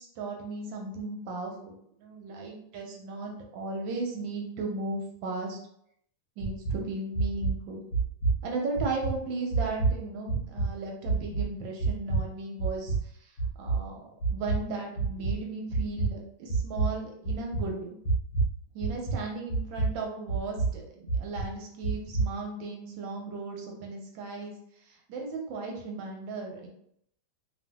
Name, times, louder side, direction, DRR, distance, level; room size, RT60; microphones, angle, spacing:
voice 1, 0.0-5.6 6.4-7.8 8.4-18.0 18.7-26.7, right 3 dB, 75° right, 0 dB, 1.3 m, -36 dB
sound 1, 6.4-6.8 7.1-7.5 7.9-8.4 8.8-9.1 9.5-10.0 10.3-10.7 11.1-11.5 11.8-12.2 12.6-13.0 13.4-13.8 14.2-14.6 15.0-15.3 15.7-16.1 16.5-16.9 17.3-17.7 18.1-18.6 18.8-19.2 19.5-19.9 20.3-20.7 21.1-21.5 21.8-22.3, right 4 dB, 70° left, 1.1 m, -27 dB
3.1 x 2.5 x 2.2 m, 0.70 s
omnidirectional pair, 2.2 m